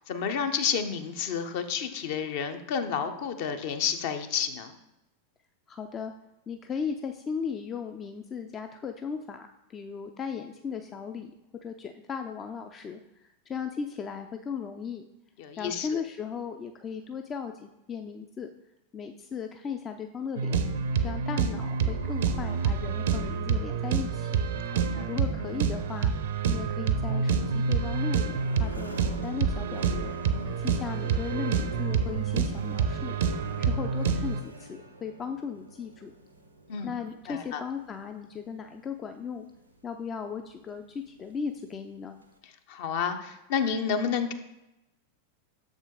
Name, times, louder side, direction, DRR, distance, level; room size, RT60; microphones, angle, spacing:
voice 1, 0.1-4.7 15.4-15.9 24.7-25.1 30.4-30.6 36.7-36.9 37.3-37.6 42.7-44.3, left 7 dB, 50° left, 7 dB, 0.7 m, -30 dB
voice 2, 5.7-6.1 6.5-11.3 11.6-15.0 15.6-18.5 18.9-20.6 21.0-24.4 25.1-30.2 30.6-36.1 36.8-39.5 39.8-42.2, left 6 dB, 25° left, 6 dB, 0.4 m, -37 dB
sound 1, 20.4-34.4, right 6 dB, 60° right, 0.6 m, -28 dB
sound 2, 27.5-42.4, right 1 dB, 85° right, 0.7 m, -47 dB
6.9 x 4.9 x 3.8 m, 0.94 s
figure-of-eight pair, 90°, 0 cm